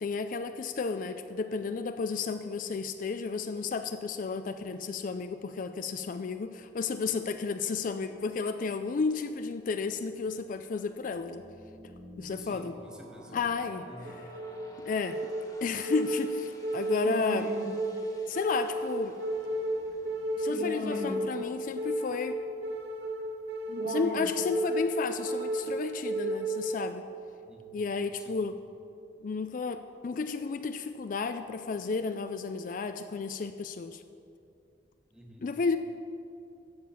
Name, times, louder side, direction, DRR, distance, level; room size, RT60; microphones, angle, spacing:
voice 1, 0.0-11.4 12.2-12.8 13.3-13.9 14.8-15.2 15.6-17.5 18.3-19.2 20.4-22.4 23.8-27.0 27.7-28.6 29.2-34.0 35.4-35.8, left 4 dB, 50° left, 9 dB, 0.4 m, -32 dB
sound 1, 9.9-22.5, left 1 dB, 20° left, 1.6 m, -53 dB
voice 2, 12.2-13.4 13.8-14.2 27.4-27.8 28.0-28.4 35.1-35.5, equal, 5° right, 1 dB, 1.3 m, -51 dB
sound 2, 14.0-27.0, right 1 dB, 65° right, 1.7 m, -33 dB
13.5 x 7.3 x 5.7 m, 2.6 s
head